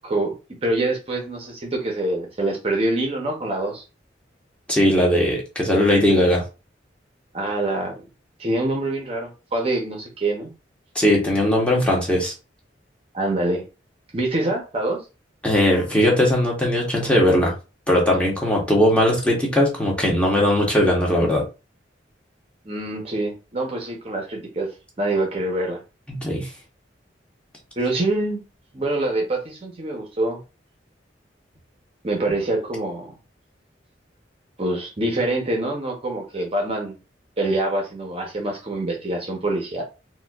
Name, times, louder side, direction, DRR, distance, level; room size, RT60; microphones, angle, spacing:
voice 1, 0.0-0.3 0.6-3.8 7.3-8.0 8.4-10.5 13.1-13.6 14.1-15.0 22.6-24.7 25.0-25.8 27.8-28.4 28.7-30.4 32.0-33.2 34.6-37.0 37.4-39.8, right 2 dB, 35° right, 0.7 m, -25 dB
voice 2, 4.7-6.4 10.9-12.3 15.4-17.5 17.9-21.4 26.1-26.5, left 1 dB, 5° left, 1.0 m, -19 dB
4.2 x 2.3 x 2.3 m
head